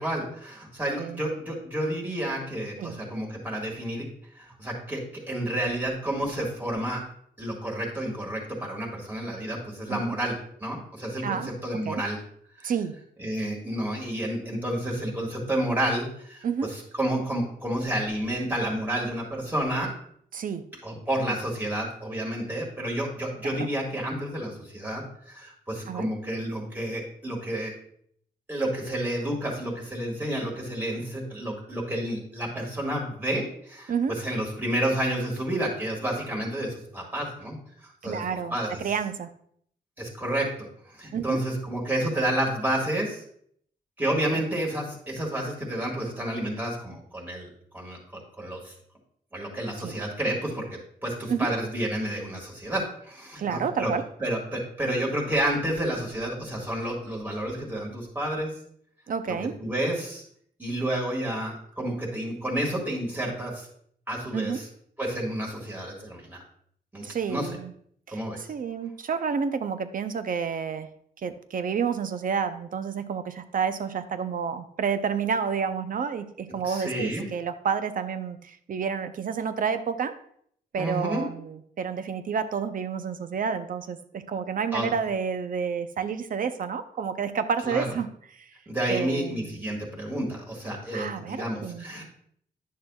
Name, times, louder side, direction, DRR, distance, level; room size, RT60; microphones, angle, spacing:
voice 1, 0.0-7.0 7.4-12.2 12.6-12.7 13.2-19.9 20.8-27.7 28.5-37.6 38.0-38.2 38.5-38.7 40.0-43.2 44.0-47.5 47.7-48.7 49.3-53.9 54.2-58.5 59.3-60.2 60.6-63.7 64.1-64.7 65.0-66.4 66.9-67.5 68.1-68.4 76.6-77.3 80.8-81.3 84.7-84.9 87.6-87.9 88.7-92.0, right 1 dB, 10° right, -2 dB, 1.9 m, -30 dB
voice 2, 11.2-11.5 11.8-12.0 12.6-12.9 16.4-16.7 20.3-20.7 23.5-23.7 25.9-26.1 33.9-34.2 38.0-39.3 41.1-41.4 49.8-49.9 51.3-51.5 53.4-54.0 59.1-59.6 64.3-64.6 67.0-67.7 68.1-70.9 71.2-80.1 80.7-88.5 88.9-89.6 90.9-91.8, right 6 dB, 55° right, 10 dB, 0.6 m, -30 dB
10.0 x 6.5 x 2.3 m, 0.65 s
cardioid pair, 100°, 17 cm